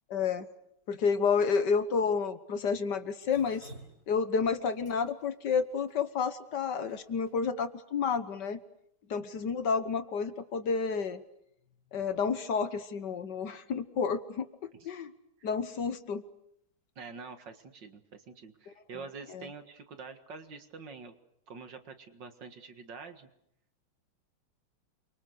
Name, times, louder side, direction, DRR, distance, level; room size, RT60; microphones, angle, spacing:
voice 1, 0.1-0.5 0.9-3.7 4.1-8.6 9.1-11.2 11.9-15.1 15.4-16.2 19.3-19.5, left 5 dB, 60° left, 11 dB, 1.7 m, -30 dB
Drip, 3.2-7.3, right 1 dB, 45° right, 4.1 m, -53 dB
voice 2, 17.0-21.2 21.5-23.3, right 4 dB, 60° right, 8 dB, 2.4 m, -46 dB
29.0 x 24.0 x 6.5 m, 0.75 s
omnidirectional pair, 2.2 m